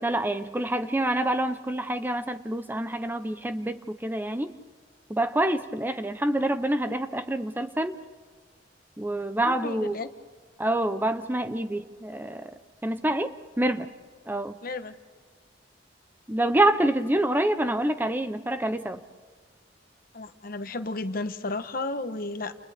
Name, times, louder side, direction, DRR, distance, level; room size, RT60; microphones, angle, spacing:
voice 1, 0.0-4.5 5.1-8.0 9.0-10.0 10.6-12.5 12.8-13.9 14.3-14.6 16.3-19.0, right 1 dB, 10° right, 10 dB, 0.7 m, -27 dB
voice 2, 9.4-10.1 14.6-15.0 20.1-22.5, left 2 dB, 50° left, 9 dB, 1.1 m, -33 dB
30.0 x 29.5 x 3.6 m, 1.5 s
head